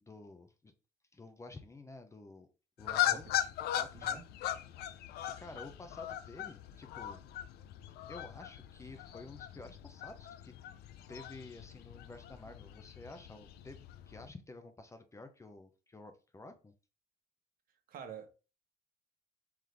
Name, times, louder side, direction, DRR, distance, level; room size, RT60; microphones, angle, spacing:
voice 1, 0.0-0.7 1.1-2.5 2.8-3.3 3.7-4.2 5.4-7.2 8.1-10.6 11.1-16.7, left 2 dB, 15° left, 0.5 m, -51 dB
sound 1, 2.8-14.3, left 12 dB, 70° left, 0.4 m, -39 dB
voice 2, 3.0-3.5 3.9-4.2 17.9-18.3, right 7 dB, 60° right, 1.0 m, -48 dB
3.8 x 3.0 x 3.3 m
cardioid pair, 110°, 17 cm